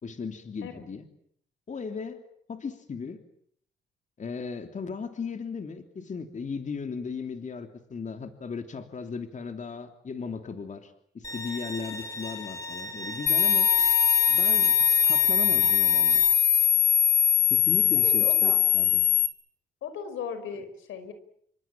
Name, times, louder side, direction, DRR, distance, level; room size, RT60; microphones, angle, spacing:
voice 1, 0.0-1.1 1.7-2.2 2.5-3.2 4.2-13.7 14.3-14.8 15.1-16.2 17.5-19.0, left 5 dB, 40° left, 7 dB, 3.1 m, -36 dB
Bowed string instrument, 11.2-16.3, left 2 dB, 15° left, 6.6 m, -37 dB
sound 1, 13.3-19.3, left 9 dB, 55° left, 2.7 m, -21 dB
voice 2, 17.9-18.6 19.8-21.1, left 7 dB, 80° left, 11 dB, 5.1 m, -37 dB
29.0 x 26.0 x 7.4 m, 0.67 s
cardioid pair, 90°, 20 cm